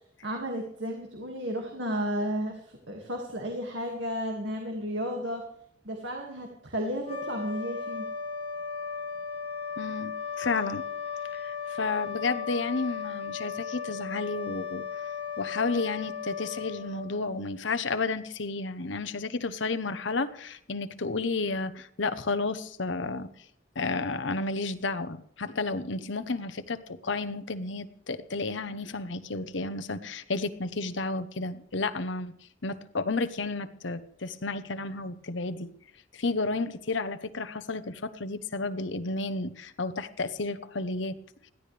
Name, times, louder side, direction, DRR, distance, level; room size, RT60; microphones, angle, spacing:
voice 1, 0.2-5.5 5.8-8.1, equal, 70° right, 2 dB, 2.3 m, -33 dB
sound 1, 7.0-17.6, left 6 dB, 30° left, 2.3 m, -36 dB
voice 2, 9.8-10.8 11.3-14.9 15.4-23.3 23.7-32.3 32.6-35.7 36.1-41.2, left 3 dB, 70° left, 9 dB, 1.0 m, -32 dB
21.0 x 14.5 x 3.4 m, 0.67 s
head